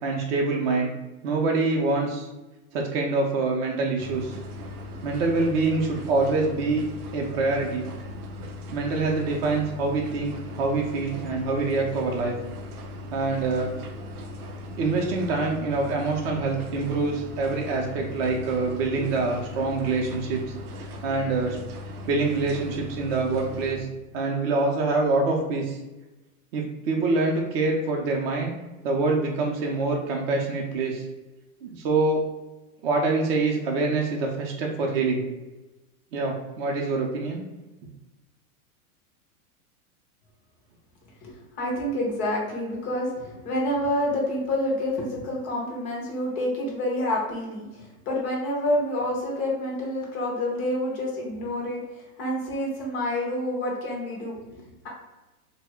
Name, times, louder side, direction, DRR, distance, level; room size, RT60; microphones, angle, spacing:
voice 1, 0.0-0.9 1.2-2.3 2.7-4.3 5.0-6.8 7.1-7.8 8.7-12.3 13.1-13.7 14.8-20.4 20.7-21.6 22.1-23.9 24.1-25.8 26.5-28.5 28.8-31.0 31.6-32.2 32.8-35.2 36.1-37.4, right 3 dB, 45° right, 0 dB, 0.5 m, -25 dB
sound 1, 4.0-23.8, left 2 dB, 85° right, 0.7 m, -38 dB
voice 2, 41.2-51.8 52.2-54.9, left 1 dB, 15° left, -2 dB, 0.4 m, -28 dB
3.2 x 2.1 x 3.5 m, 1.1 s
supercardioid pair, 150°, 44 cm